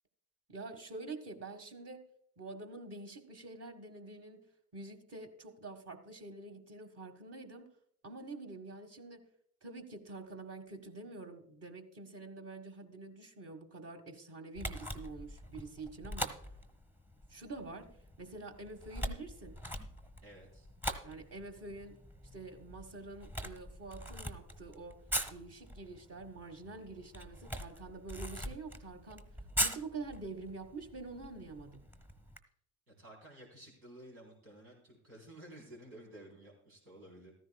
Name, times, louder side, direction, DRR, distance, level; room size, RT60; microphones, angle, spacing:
voice 1, 0.5-2.0 2.4-4.4 4.7-7.7 8.0-9.2 9.6-16.4 17.3-17.9 18.2-19.5 21.0-22.0 22.3-29.2 29.6-31.8, right 3 dB, 35° right, 5 dB, 1.7 m, -47 dB
Camera, 14.5-32.4, equal, 5° right, 1.2 m, -42 dB
voice 2, 20.2-20.7 32.9-37.3, right 1 dB, 85° right, -1 dB, 4.0 m, -53 dB
14.5 x 13.5 x 2.3 m, 0.66 s
hypercardioid pair, 70°, 44 cm